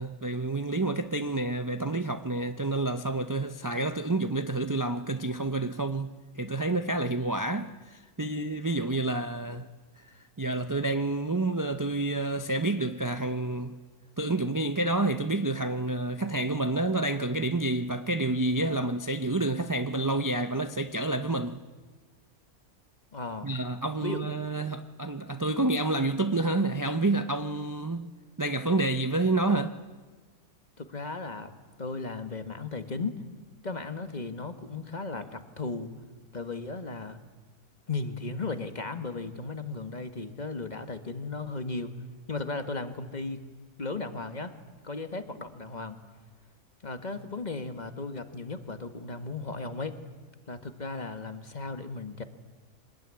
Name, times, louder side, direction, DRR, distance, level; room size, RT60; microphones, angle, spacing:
voice 1, 0.0-9.7 10.4-13.7 14.2-21.6 23.4-29.8, right 2 dB, 30° right, 0.4 m, -29 dB
voice 2, 23.1-23.5 24.0-24.3 30.8-31.5 31.8-33.1 33.6-35.9 36.3-37.2 37.9-41.9 42.3-43.4 43.8-44.5 44.8-46.0 46.8-49.9 50.5-52.2, left 3 dB, 30° left, 1.5 m, -36 dB
24.5 x 19.5 x 9.7 m
omnidirectional pair, 1.6 m